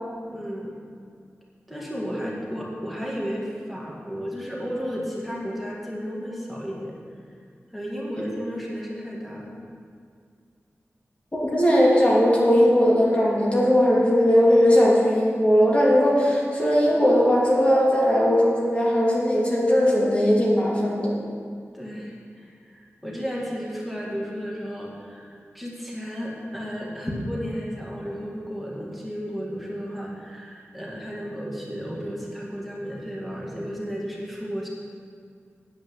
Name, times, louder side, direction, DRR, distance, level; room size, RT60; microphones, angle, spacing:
voice 1, 0.3-0.7 1.7-6.9 7.7-9.6 21.7-34.7, equal, ahead, -4 dB, 2.1 m, -33 dB
voice 2, 11.3-21.1, equal, 25° left, -5 dB, 2.5 m, -19 dB
9.3 x 5.2 x 7.9 m, 2.2 s
wide cardioid pair, 65°, 5 cm